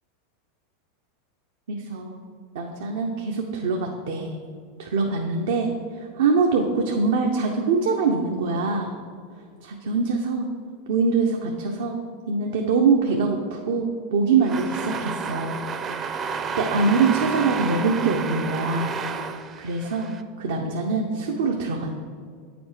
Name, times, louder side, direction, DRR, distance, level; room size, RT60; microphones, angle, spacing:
voice 1, 1.7-2.2 2.5-4.4 4.8-5.7 6.0-8.9 9.6-10.5 10.9-12.0 12.3-15.6 16.6-19.0 19.6-20.1 20.4-22.0, right 4 dB, 80° right, 1 dB, 0.7 m, -23 dB
sound 1, 14.4-20.2, right 6 dB, 30° right, 0.5 m, -31 dB
8.6 x 5.2 x 4.9 m, 2.1 s
hypercardioid pair, 110°, 0 cm